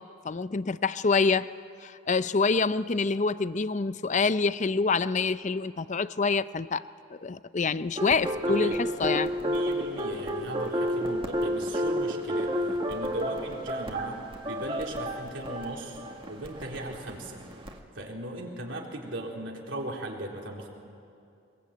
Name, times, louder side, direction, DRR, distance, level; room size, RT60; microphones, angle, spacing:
voice 1, 0.0-1.5 1.8-6.8 7.2-9.3, left 4 dB, 40° left, 14 dB, 0.5 m, -26 dB
Quilty's Old School Piano, 8.0-17.8, equal, 25° right, 1.9 m, -31 dB
voice 2, 8.5-8.8 9.4-14.2 14.5-17.4 17.9-20.7, right 1 dB, 70° right, -1 dB, 3.9 m, -38 dB
23.0 x 22.0 x 9.0 m, 2.6 s
head